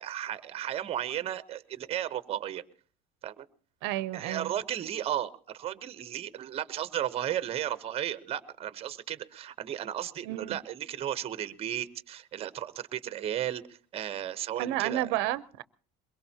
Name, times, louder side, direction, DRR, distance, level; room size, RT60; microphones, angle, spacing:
voice 1, 0.0-2.6 3.2-3.4 4.1-15.1, right 11 dB, 30° right, 13 dB, 0.9 m, -34 dB
voice 2, 3.8-4.5 10.2-10.6 14.6-15.6, right 14 dB, 75° right, 16 dB, 0.7 m, -31 dB
22.5 x 22.5 x 2.8 m, 0.42 s
cardioid pair, 155°, 19 cm